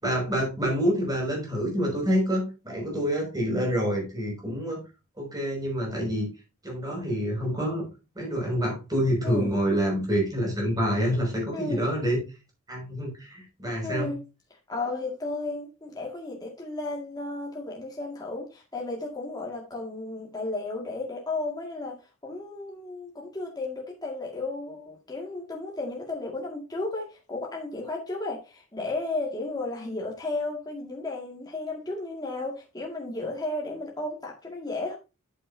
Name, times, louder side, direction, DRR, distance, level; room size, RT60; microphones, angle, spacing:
voice 1, 0.0-4.8 5.2-6.3 6.6-7.9 8.2-12.2 12.7-14.1, equal, 20° right, 5.8 m, -27 dB
voice 2, 11.5-11.9 13.8-14.2 14.7-22.0 22.2-35.0, left 2 dB, 20° left, 2.0 m, -34 dB
9.2 x 8.9 x 2.7 m
head